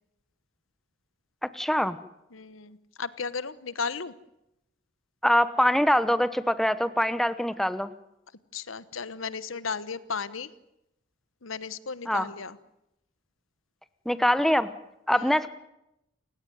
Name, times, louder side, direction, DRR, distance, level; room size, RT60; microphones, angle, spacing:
voice 1, 1.4-2.0 5.2-7.9 12.1-12.3 14.0-14.7 15.1-15.5, equal, ahead, 13 dB, 1.0 m, -24 dB
voice 2, 2.3-4.1 8.5-10.5 11.4-12.6 15.1-15.4, left 5 dB, 90° left, 16 dB, 1.2 m, -35 dB
29.0 x 17.0 x 9.5 m, 0.86 s
head